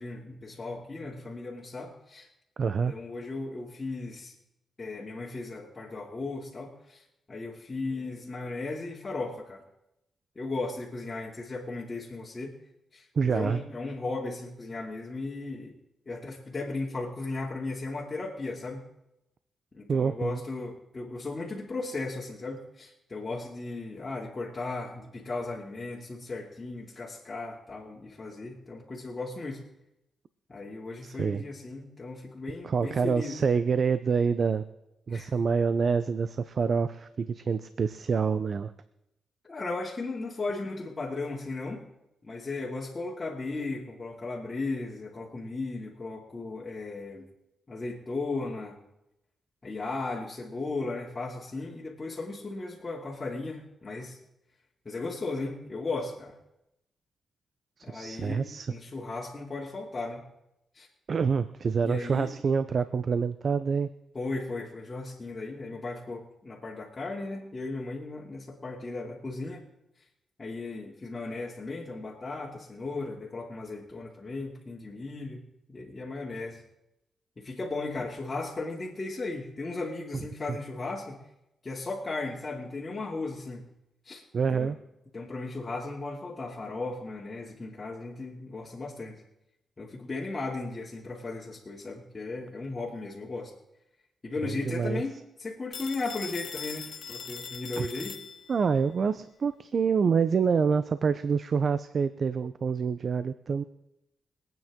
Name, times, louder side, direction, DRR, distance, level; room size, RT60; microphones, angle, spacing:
voice 1, 0.0-2.3 2.9-4.3 4.8-9.6 10.3-12.5 12.9-15.8 16.1-18.8 19.7-29.6 30.5-33.4 35.1-35.3 39.4-41.8 42.2-47.3 47.7-48.8 49.6-54.2 54.8-56.4 57.8-60.2 60.7-60.9 61.8-62.3 64.1-69.6 70.4-75.4 75.7-76.6 77.4-81.2 81.6-83.7 84.0-84.2 84.5-84.7 85.1-89.2 89.8-93.5 94.2-98.2, left 3 dB, 35° left, -5 dB, 2.6 m, -36 dB
voice 2, 2.6-2.9 13.2-13.6 19.9-20.4 31.0-31.4 32.6-34.6 35.1-38.7 57.8-58.7 61.1-63.9 80.1-80.2 80.5-80.6 84.3-84.8 94.4-95.0 97.8-97.9 98.5-103.6, right 5 dB, 55° right, 12 dB, 0.6 m, -27 dB
Telephone, 95.7-98.7, left 7 dB, 65° left, 1.0 m, -41 dB
24.0 x 9.1 x 3.7 m, 0.86 s
cardioid pair, 60°, 0 cm